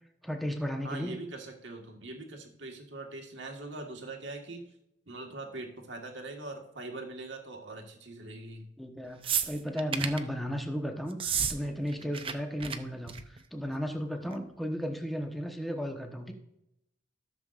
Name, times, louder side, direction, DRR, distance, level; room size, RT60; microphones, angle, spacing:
voice 1, 0.2-1.2 8.8-16.3, equal, ahead, 3 dB, 1.0 m, -34 dB
voice 2, 0.8-4.6 5.1-8.7, right 2 dB, 80° right, 2 dB, 1.6 m, -42 dB
sound 1, 9.2-10.2 11.1-11.6 11.8-12.3 12.6-12.8 13.1-13.4 14.3-14.4, right 7 dB, 30° right, 0.6 m, -31 dB
14.0 x 7.1 x 2.5 m, 0.81 s
head